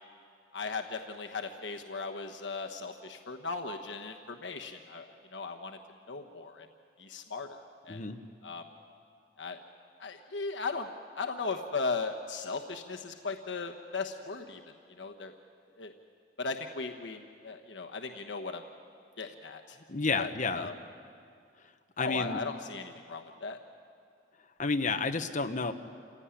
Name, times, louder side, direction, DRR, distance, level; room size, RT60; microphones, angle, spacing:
voice 1, 0.5-5.8 6.1-6.7 7.0-7.6 7.8-8.0 8.4-8.6 9.4-9.6 10.0-10.9 11.1-14.6 15.0-15.3 15.8-15.9 16.4-18.6 19.2-19.8 20.2-20.7 22.0-23.6, left 4 dB, 80° left, 4 dB, 1.2 m, -37 dB
voice 2, 7.9-8.2 19.9-20.7 22.0-22.4 24.6-25.7, left 4 dB, 45° left, 7 dB, 1.1 m, -30 dB
28.0 x 16.5 x 10.0 m, 2.4 s
head